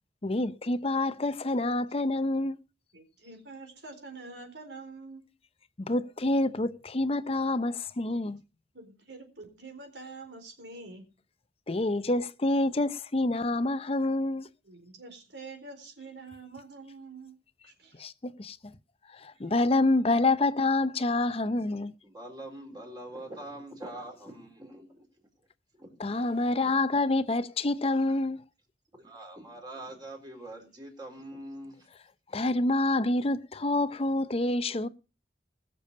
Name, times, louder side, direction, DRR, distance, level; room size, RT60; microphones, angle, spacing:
voice 1, 0.2-2.5 5.8-8.4 11.7-14.5 18.0-18.6 19.2-21.9 26.0-28.4 32.3-34.9, left 2 dB, 35° left, 0.7 m, -27 dB
voice 2, 2.9-5.2 8.7-11.0 14.6-17.4 17.6-18.0, right 3 dB, 75° right, 4.2 m, -46 dB
voice 3, 22.0-25.0 25.8-26.3 28.9-31.9, right 1 dB, 25° right, 4.0 m, -44 dB
21.0 x 7.0 x 5.4 m
head